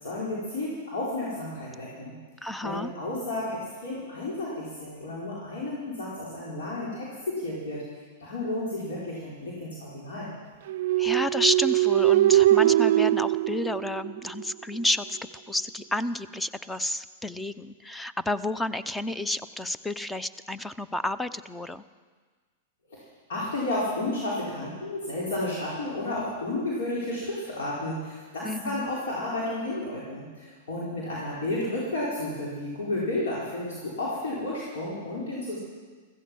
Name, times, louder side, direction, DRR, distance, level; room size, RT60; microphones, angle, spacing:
voice 1, 0.0-7.8 8.2-10.3 22.9-35.6, left 1 dB, 80° left, -6 dB, 4.4 m, -32 dB
voice 2, 2.4-2.9 11.0-15.2 15.5-21.8 28.4-28.9, left 1 dB, 5° left, 14 dB, 0.6 m, -30 dB
sound 1, 10.7-14.5, right 14 dB, 65° right, 0.4 m, -22 dB
15.5 x 15.0 x 6.2 m, 1.5 s
hypercardioid pair, 130°, 0 cm